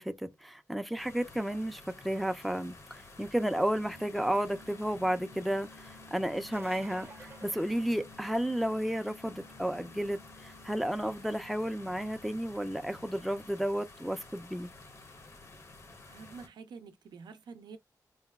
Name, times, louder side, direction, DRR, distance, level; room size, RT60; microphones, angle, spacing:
voice 1, 0.0-14.7, equal, ahead, 0.3 m, -32 dB
sound 1, 1.0-16.5, left 3 dB, 40° left, 0.6 m, -52 dB
sound 2, 3.7-13.5, left 2 dB, 85° left, 1.3 m, -57 dB
sound 3, 6.5-8.6 14.1-14.2 16.0-16.1, right 4 dB, 35° right, 0.6 m, -52 dB
voice 2, 16.1-17.8, right 5 dB, 85° right, 0.4 m, -48 dB
3.8 x 2.1 x 2.2 m
wide cardioid pair, 105°, 7 cm